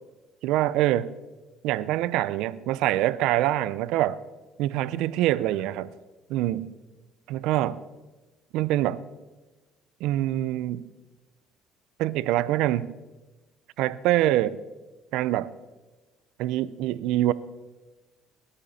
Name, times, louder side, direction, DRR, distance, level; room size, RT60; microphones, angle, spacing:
voice 1, 0.4-1.2 1.6-4.2 4.6-5.9 6.3-6.7 7.3-7.8 8.5-9.0 10.0-10.9 12.0-12.9 13.8-14.5 15.1-15.5 16.4-17.3, right 14 dB, 80° right, 18 dB, 0.5 m, -25 dB
20.0 x 12.0 x 4.2 m, 1.2 s
cardioid pair, 100°, 0 cm